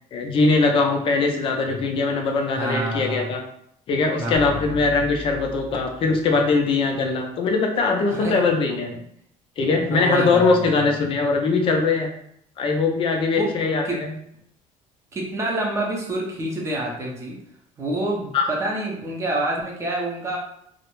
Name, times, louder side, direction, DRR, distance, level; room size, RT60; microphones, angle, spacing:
voice 1, 0.1-3.4 3.9-9.0 9.6-12.1 12.6-14.1 18.3-18.4, left 3 dB, 40° left, 3 dB, 0.4 m, -21 dB
voice 2, 2.5-3.3 4.2-4.8 8.1-8.4 9.9-10.9 13.3-13.5 13.8-14.0 15.1-17.4 17.8-20.4, right 1 dB, 20° right, -2 dB, 0.6 m, -27 dB
sound 1, 4.3-6.5, left 2 dB, 80° right, 0.5 m, -38 dB
2.3 x 2.0 x 3.0 m, 0.72 s
cardioid pair, 150°, 14 cm